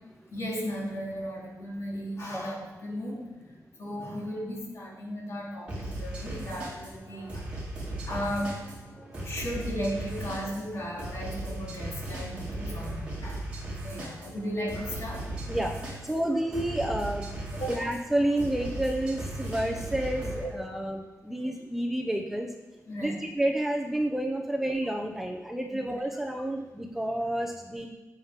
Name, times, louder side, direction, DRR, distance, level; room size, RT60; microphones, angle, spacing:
voice 1, 0.3-3.5 3.8-7.5 8.1-8.6 9.2-13.4 13.8-15.2 17.6-17.8 20.4-20.5 22.9-23.2 25.7-25.8, equal, 55° left, -4 dB, 3.4 m, -35 dB
sound 1, 5.7-20.4, right 1 dB, 20° right, 4.2 m, -37 dB
voice 2, 16.0-17.3 17.7-22.5 23.0-27.9, right 1 dB, 5° right, 1 dB, 0.8 m, -30 dB
17.0 x 7.4 x 3.7 m, 1.2 s
wide cardioid pair, 165°, 6 cm